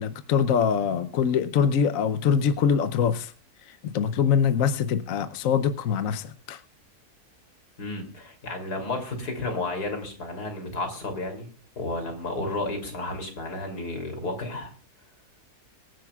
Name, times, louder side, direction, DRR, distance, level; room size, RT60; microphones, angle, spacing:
voice 1, 0.0-3.3 3.8-6.6, left 7 dB, 65° left, 11 dB, 1.1 m, -24 dB
voice 2, 7.8-11.5 11.8-14.7, left 2 dB, 80° left, 4 dB, 3.6 m, -32 dB
24.0 x 10.5 x 2.3 m, 0.39 s
omnidirectional pair, 1.6 m